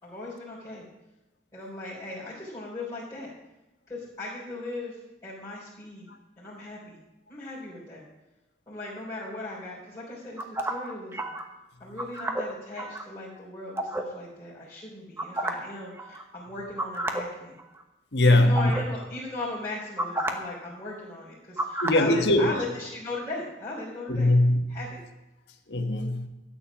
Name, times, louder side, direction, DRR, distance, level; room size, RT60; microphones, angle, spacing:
voice 1, 0.0-0.9 1.5-3.3 3.9-6.1 6.4-7.0 7.3-8.0 8.7-11.3 11.8-17.5 18.2-24.3 24.7-24.9, left 2 dB, 20° left, -10 dB, 3.5 m, -38 dB
sound 1, 10.4-11.4 12.0-13.0 13.8-14.0 15.2-15.7 16.0-16.2 16.8-17.2 17.6-17.8 18.5-18.8 20.0-20.3 21.6-22.0, right 1 dB, 15° right, 1.0 m, -30 dB
voice 2, 18.1-18.7 21.8-22.5 24.1-24.8 25.7-26.3, left 1 dB, 70° left, 5 dB, 1.4 m, -21 dB
13.0 x 9.1 x 6.1 m, 0.98 s
head